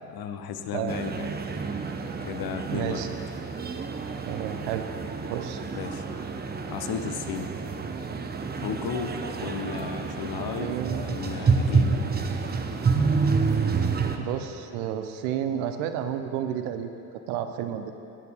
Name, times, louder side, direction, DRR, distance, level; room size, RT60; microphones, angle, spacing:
voice 1, 0.1-1.3 2.2-3.1 5.7-6.1 6.7-7.5 8.6-12.0, left 7 dB, 50° left, 7 dB, 0.8 m, -34 dB
voice 2, 0.7-1.1 2.7-3.1 4.3-4.9 5.3-5.6 10.6-11.0 14.2-16.9 17.3-17.9, right 10 dB, 65° right, 8 dB, 0.7 m, -31 dB
sound 1, 0.9-14.2, right 4 dB, 20° right, 0.6 m, -28 dB
14.5 x 9.2 x 2.3 m, 2.7 s
figure-of-eight pair, 40°, 47 cm